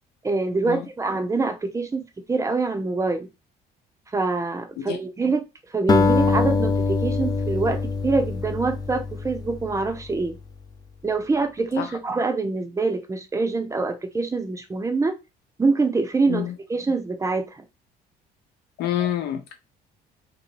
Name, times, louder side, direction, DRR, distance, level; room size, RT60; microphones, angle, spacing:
voice 1, 0.2-2.0 2.3-3.3 4.1-5.5 5.7-10.4 11.0-15.2 15.6-16.4 16.7-17.6, right 3 dB, 20° right, 8 dB, 0.6 m, -25 dB
Acoustic guitar, 5.9-10.3, left 4 dB, 25° left, 0.4 m, -24 dB
voice 2, 18.8-19.5, left 11 dB, 80° left, 5 dB, 0.9 m, -27 dB
3.0 x 2.8 x 3.0 m, 0.25 s
cardioid pair, 110°, 17 cm